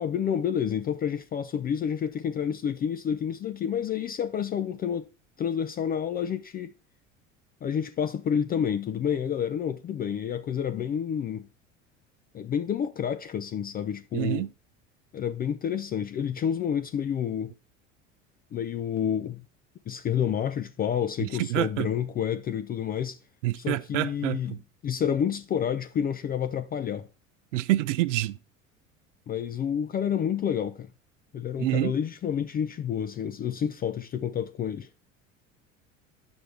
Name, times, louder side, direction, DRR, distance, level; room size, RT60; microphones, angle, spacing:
voice 1, 0.0-5.1 5.4-6.7 7.6-11.5 12.3-14.5 15.1-17.5 18.5-19.4 19.9-23.2 23.6-24.6 24.8-27.1 29.3-30.9 31.3-34.9, left 8 dB, 25° left, 0.4 m, -29 dB
voice 2, 14.1-14.5 21.2-21.9 23.4-24.6 27.5-28.4 31.6-31.9, right 16 dB, 70° right, 0.5 m, -27 dB
8.8 x 6.0 x 3.3 m
figure-of-eight pair, 70°, 39 cm